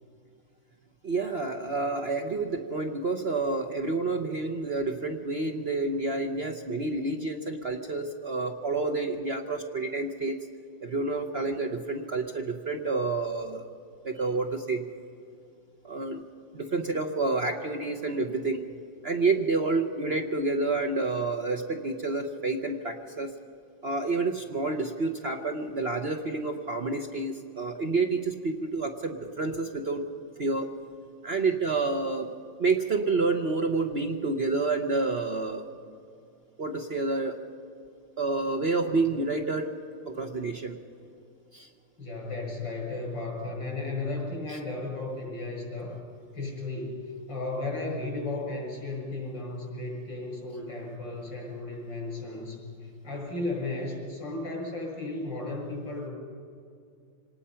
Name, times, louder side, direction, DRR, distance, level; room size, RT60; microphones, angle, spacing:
voice 1, 1.0-10.5 10.8-13.7 14.0-14.8 15.8-16.2 16.5-18.6 19.0-23.3 23.8-30.0 30.4-30.7 31.2-32.3 32.6-35.6 36.6-37.4 38.2-39.7 40.1-40.8 41.5-41.7 44.5-44.6, right 3 dB, 45° right, 5 dB, 0.9 m, -29 dB
voice 2, 42.0-46.0 46.3-56.1, left 2 dB, 85° left, -1 dB, 6.9 m, -34 dB
25.5 x 19.0 x 5.7 m, 2.3 s
omnidirectional pair, 2.0 m